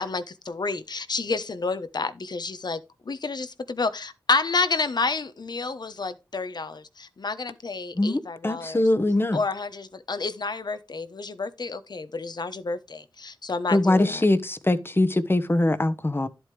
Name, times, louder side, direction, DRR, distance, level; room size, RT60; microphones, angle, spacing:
voice 1, 0.0-8.8 9.3-14.2, left 4 dB, 60° left, 1.0 m, -30 dB
voice 2, 7.9-9.4 13.7-16.3, left 1 dB, 30° left, 1.1 m, -22 dB
11.0 x 8.0 x 3.3 m
cardioid pair, 45°, 8 cm